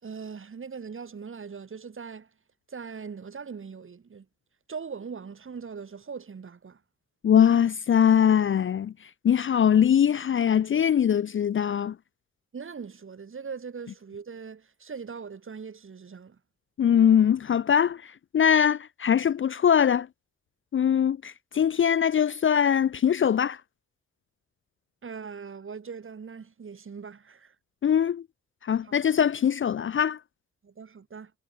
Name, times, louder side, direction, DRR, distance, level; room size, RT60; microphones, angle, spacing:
voice 1, 0.0-2.3 2.7-4.3 4.7-6.8 12.5-16.4 25.0-27.5 28.8-29.0 30.6-31.3, right 5 dB, 45° right, 3.8 m, -40 dB
voice 2, 7.2-8.9 9.2-12.0 16.8-20.1 20.7-23.6 27.8-28.2 28.6-30.2, left 8 dB, 45° left, 0.5 m, -22 dB
wide cardioid pair, 130°, 30 cm